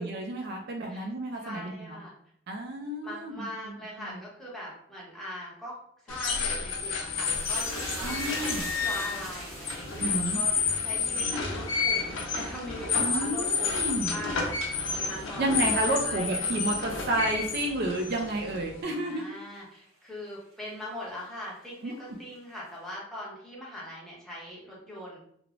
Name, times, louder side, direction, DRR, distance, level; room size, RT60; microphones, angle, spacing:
voice 1, 0.0-2.0 2.5-4.2 8.0-8.7 10.0-10.4 13.0-14.2 15.4-19.2 21.8-22.0, right 1 dB, 50° right, 2 dB, 0.3 m, -31 dB
voice 2, 1.4-2.1 3.0-5.8 6.0-14.5 14.8-16.4 18.9-25.2, left 1 dB, ahead, -6 dB, 0.8 m, -41 dB
sound 1, 6.1-18.8, left 5 dB, 70° left, 0.5 m, -30 dB
sound 2, 7.2-15.8 16.1-16.8 17.1-17.3, right 2 dB, 80° right, 1.1 m, -44 dB
3.0 x 2.0 x 2.4 m, 0.69 s
head